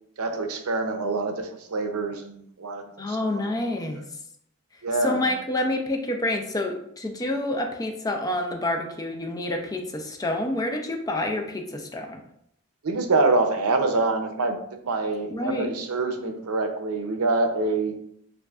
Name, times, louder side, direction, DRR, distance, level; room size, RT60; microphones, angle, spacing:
voice 1, 0.2-3.5 4.8-5.3 12.8-14.6 14.8-17.9, right 3 dB, 90° right, 6 dB, 0.6 m, -25 dB
voice 2, 3.0-4.0 5.0-12.2 15.3-15.7, left 1 dB, 15° left, 3 dB, 0.4 m, -28 dB
6.9 x 2.5 x 2.4 m, 0.72 s
head